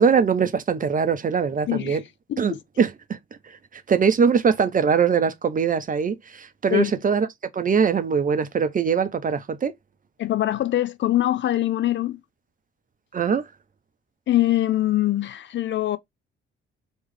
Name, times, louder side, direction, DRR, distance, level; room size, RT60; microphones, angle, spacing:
voice 1, 0.0-2.0 2.4-3.2 3.7-7.3 7.5-9.7 13.1-13.4, right 6 dB, 30° right, 0.6 m, -22 dB
voice 2, 1.7-2.0 2.3-2.6 6.7-6.9 10.2-12.2 14.3-16.0, left 14 dB, 40° left, 0.5 m, -23 dB
3.1 x 3.1 x 3.5 m
figure-of-eight pair, 40°, 29 cm